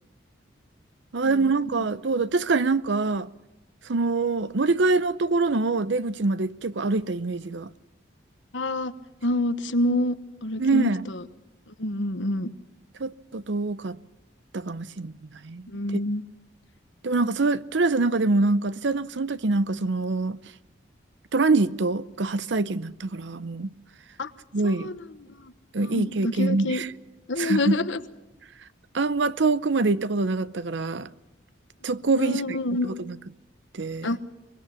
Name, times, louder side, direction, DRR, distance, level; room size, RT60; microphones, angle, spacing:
voice 1, 1.1-3.3 3.9-7.7 10.6-11.1 13.0-14.0 14.5-15.1 15.4-15.7 17.0-20.4 21.3-23.7 24.5-24.9 25.7-26.9 27.4-27.8 28.9-31.1 31.8-32.6 32.8-33.2 33.7-34.2, right 3 dB, 75° right, 0.7 m, -24 dB
voice 2, 8.5-8.9 9.2-10.1 10.4-11.2 11.8-12.5 15.7-16.2 24.2-24.3 24.6-25.0 25.3-25.5 25.8-26.8 27.3-28.0 32.2-32.9 34.0-34.2, left 1 dB, 80° left, 1.2 m, -27 dB
24.0 x 21.0 x 7.1 m
head